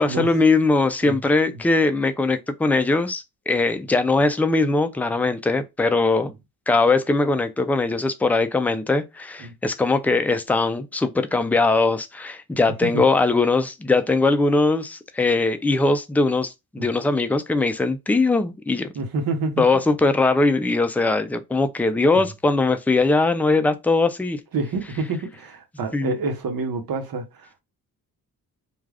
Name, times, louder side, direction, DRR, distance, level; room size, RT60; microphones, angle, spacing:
voice 1, 0.0-6.3 6.7-18.9 19.6-24.4 25.9-26.1, left 3 dB, 5° left, 0.3 m, -21 dB
voice 2, 18.9-19.6 22.1-22.2 24.5-27.6, right 3 dB, 70° right, 0.9 m, -28 dB
2.3 x 2.3 x 3.3 m
cardioid pair, 85°, 37 cm